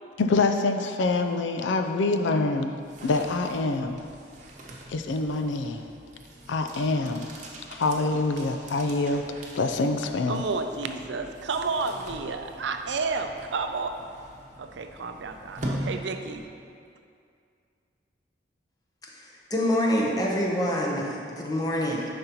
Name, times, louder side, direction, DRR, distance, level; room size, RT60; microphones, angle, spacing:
voice 1, 0.2-2.7 3.0-4.0 4.9-5.9 6.5-7.3 7.7-9.2 9.5-10.4, left 3 dB, 90° left, 6 dB, 0.5 m, -25 dB
sound 1, 2.6-16.7, right 1 dB, 40° right, 0.9 m, -42 dB
voice 2, 10.3-13.9 14.6-16.4, right 4 dB, 75° right, 6 dB, 0.5 m, -31 dB
voice 3, 19.5-22.1, equal, 20° left, -2 dB, 0.8 m, -26 dB
10.5 x 5.3 x 3.0 m, 2.3 s
head